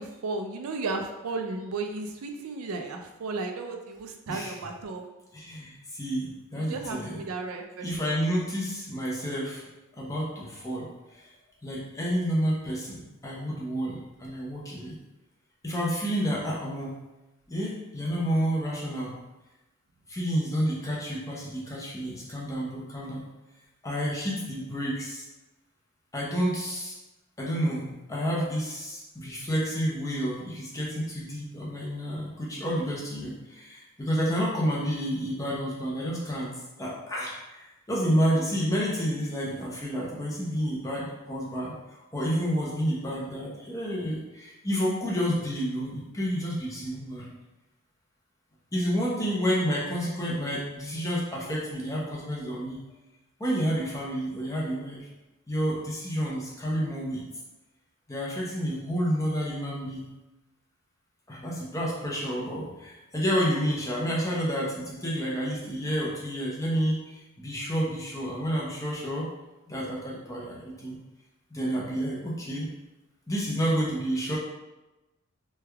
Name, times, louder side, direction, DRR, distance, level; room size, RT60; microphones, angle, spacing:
voice 1, 0.0-5.0 6.5-8.1, right 3 dB, 80° right, 4 dB, 0.4 m, -34 dB
voice 2, 4.3-4.7 5.3-7.2 7.8-9.6 9.9-11.2 11.6-15.0 15.6-16.9 17.5-19.2 20.1-23.2 23.8-25.2 26.1-26.9 27.4-41.7 42.1-47.3 48.7-52.8 53.4-55.0 55.5-57.2 58.1-60.1 61.3-69.3 69.7-71.0 71.5-72.7 73.3-74.4, equal, 15° left, -5 dB, 0.6 m, -30 dB
3.3 x 2.3 x 3.3 m, 1.0 s
head